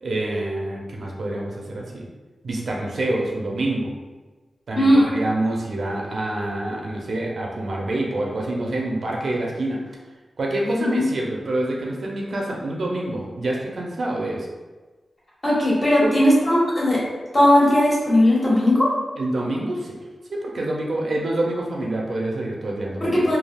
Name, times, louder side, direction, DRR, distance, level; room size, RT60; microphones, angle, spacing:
voice 1, 0.0-2.1 2.4-3.9 4.7-9.8 10.4-14.5 16.0-16.1 19.2-20.0 20.3-23.2, right 1 dB, 65° right, -2 dB, 0.5 m, -26 dB
voice 2, 4.7-5.1 10.6-11.0 15.4-17.0 17.3-18.9 23.0-23.4, left 1 dB, 40° left, -7 dB, 1.2 m, -17 dB
3.4 x 2.3 x 2.3 m, 1.3 s
wide cardioid pair, 90°, 0 cm